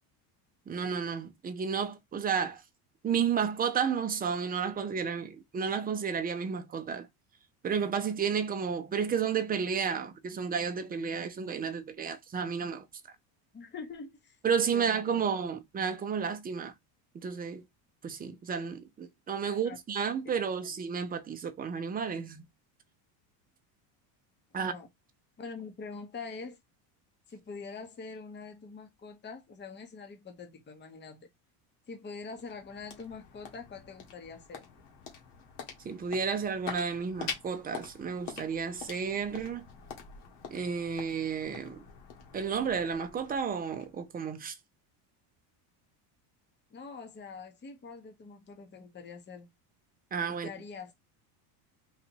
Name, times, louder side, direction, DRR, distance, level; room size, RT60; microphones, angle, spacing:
voice 1, 0.7-2.6 3.0-7.1 7.6-12.9 14.4-16.7 17.2-17.6 18.0-22.4 24.5-24.7 35.8-39.7 40.5-41.8 42.3-44.6 50.1-50.5, right 6 dB, 20° right, 0.7 m, -32 dB
voice 2, 13.5-14.4 14.7-15.0 19.4-19.8 20.3-20.7 24.5-24.9 25.4-26.6 27.3-31.3 31.9-34.6 46.7-49.5 50.3-50.9, left 4 dB, 20° left, 1.1 m, -44 dB
sound 1, 31.9-44.3, left 6 dB, 55° left, 1.8 m, -46 dB
4.1 x 2.6 x 4.4 m
cardioid pair, 130°, 48 cm